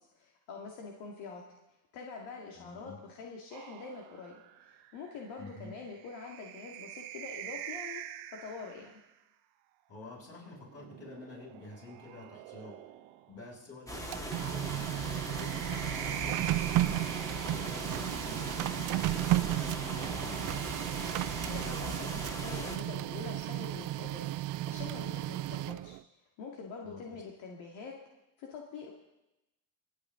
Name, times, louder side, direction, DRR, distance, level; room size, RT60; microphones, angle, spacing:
voice 1, 0.1-1.4 1.9-8.0 8.4-9.0 21.4-25.9 26.4-27.9 28.4-28.9, left 4 dB, 70° left, -1 dB, 2.2 m, -45 dB
voice 2, 2.5-3.0 5.4-5.7 9.9-12.7 13.3-20.5 26.8-27.2, left 3 dB, 30° left, -4 dB, 6.9 m, -48 dB
sound 1, 3.5-9.0 10.4-13.4 14.8-18.2 19.5-22.4, right 12 dB, 85° right, 1.1 m, -46 dB
sound 2, 13.9-22.8, equal, 5° left, 1.9 m, -40 dB
Printer, 13.9-26.0, right 16 dB, 45° right, 0.4 m, -34 dB
26.5 x 9.4 x 3.8 m, 0.95 s
supercardioid pair, 110°, 48 cm